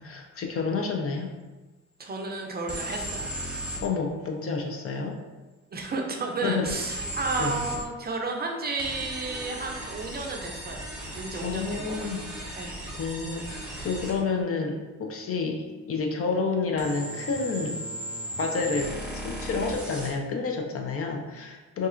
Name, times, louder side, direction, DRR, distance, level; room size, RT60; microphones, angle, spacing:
voice 1, 0.0-1.3 3.8-5.2 6.4-6.7 7.4-7.6 11.4-12.7 12.9-17.8 18.4-21.9, left 4 dB, 50° left, 3 dB, 0.5 m, -30 dB
voice 2, 2.0-3.3 5.7-10.9 11.1-12.0 12.6-12.8, right 3 dB, 35° right, 1 dB, 0.5 m, -32 dB
sound 1, 2.7-3.8 6.7-7.8 8.8-14.2 16.8-20.1, right 1 dB, 5° right, 0.9 m, -36 dB
4.0 x 2.4 x 2.5 m, 1.2 s
cardioid pair, 90°, 30 cm